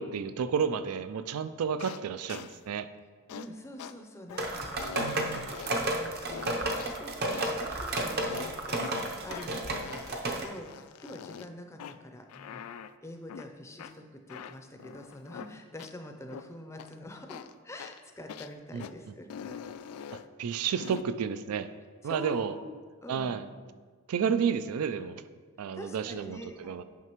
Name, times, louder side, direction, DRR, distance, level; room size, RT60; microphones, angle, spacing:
voice 1, 0.0-2.9 4.9-5.5 18.7-18.8 20.4-21.7 22.0-22.5 23.1-23.5 24.1-25.2 25.6-26.8, right 7 dB, 85° right, 12 dB, 0.4 m, -31 dB
sound 1, 1.8-2.0 2.3-2.6 3.3-3.5 3.8-3.9 4.3-4.4 4.8-5.9 6.3-7.0 7.3-7.6 8.3-8.9 9.3-9.5 9.8-11.5 11.8-12.0 12.3-12.9 13.3-13.5 13.8-13.9 14.3-15.5 15.8-15.9 16.3-16.4 16.8-16.9 17.3-17.5 17.8-18.0 18.3-18.5 18.8-18.9 19.3-20.3 20.8-21.0, left 7 dB, 80° left, 0.3 m, -43 dB
voice 2, 3.3-12.7 13.0-19.3 22.0-22.7 23.0-23.5 25.7-26.8, left 1 dB, 10° left, 4 dB, 0.5 m, -46 dB
sound 2, 4.4-10.4, right 1 dB, 45° right, 0.7 m, -32 dB
9.3 x 5.7 x 3.0 m, 1.5 s
head